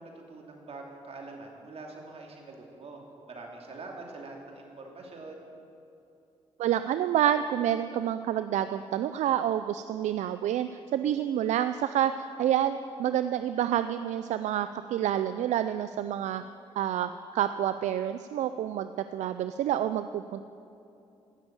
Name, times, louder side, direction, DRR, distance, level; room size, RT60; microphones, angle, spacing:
voice 1, 0.0-3.0 3.3-5.5, right 3 dB, 60° right, 0 dB, 2.9 m, -44 dB
voice 2, 6.6-12.1 12.4-16.4 16.8-20.4, right 11 dB, 85° right, 11 dB, 0.4 m, -28 dB
15.5 x 7.0 x 8.9 m, 2.7 s
cardioid pair, 65°, 12 cm